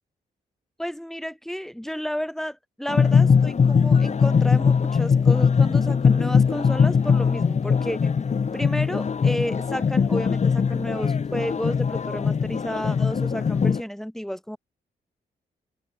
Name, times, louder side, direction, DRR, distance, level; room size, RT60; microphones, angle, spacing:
voice 1, 0.8-8.2 8.5-14.6, equal, ahead, 5.9 m, -32 dB
sound 1, 2.9-13.8, left 6 dB, 40° left, 1.0 m, -21 dB
open air
cardioid pair, 80°, 17 cm